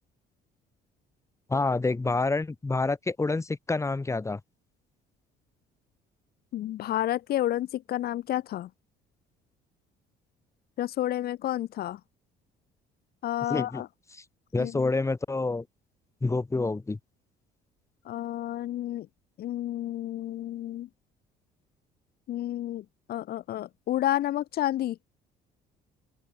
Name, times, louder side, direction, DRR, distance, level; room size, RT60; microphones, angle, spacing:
voice 1, 1.5-4.4 13.5-13.8 14.1-14.2 14.5-15.6 16.2-17.0, left 3 dB, 15° left, 5.1 m, -28 dB
voice 2, 6.5-8.7 10.8-12.0 13.2-13.9 14.6-14.9 18.1-19.1 19.4-20.9 22.3-25.0, left 13 dB, 65° left, 2.8 m, -30 dB
open air
cardioid pair, 110°, 17 cm